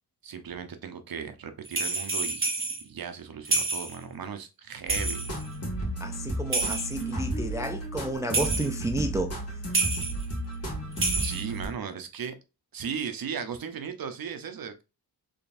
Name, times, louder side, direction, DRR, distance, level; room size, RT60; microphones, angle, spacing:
voice 1, 0.2-2.5 2.8-5.3 11.2-12.3 12.7-14.8, right 7 dB, 55° right, 0.8 m, -37 dB
sound 1, 1.7-2.8 3.5-4.0 4.9-5.5 6.5-7.1 8.3-8.8 9.7-10.2 10.9-11.6, right 3 dB, 30° right, 1.2 m, -28 dB
sound 2, 4.9-11.7, right 1 dB, 40° left, 1.6 m, -33 dB
voice 2, 6.0-9.3, right 1 dB, 10° right, 0.3 m, -31 dB
3.8 x 3.4 x 2.5 m
wide cardioid pair, 90°, 41 cm